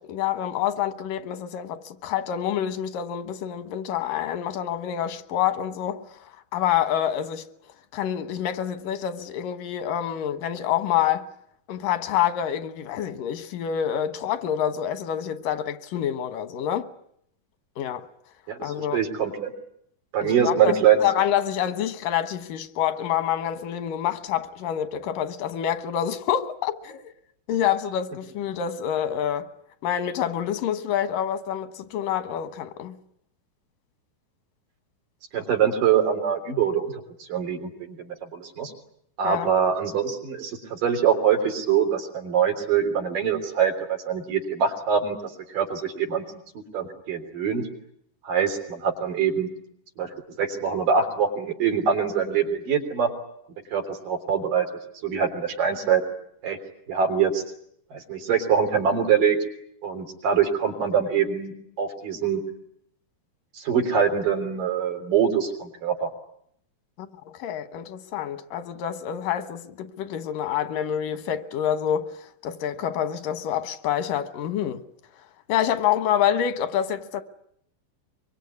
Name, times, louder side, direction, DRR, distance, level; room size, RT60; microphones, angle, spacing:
voice 1, 0.0-6.0 6.5-7.5 7.9-11.3 11.7-16.9 17.8-18.1 18.6-19.0 20.2-27.1 27.5-29.5 29.8-33.0 39.2-39.5 67.0-74.8 75.5-77.2, left 10 dB, 90° left, 2.9 m, -27 dB
voice 2, 18.5-19.5 20.1-21.0 35.3-36.9 37.2-38.7 39.2-46.2 46.6-47.6 48.2-49.5 50.0-50.1 50.4-53.1 53.7-54.7 55.0-56.0 56.4-56.6 56.9-57.4 57.9-59.4 59.8-62.4 63.5-66.1, right 7 dB, 85° right, 5.2 m, -24 dB
24.0 x 23.5 x 9.6 m
omnidirectional pair, 3.7 m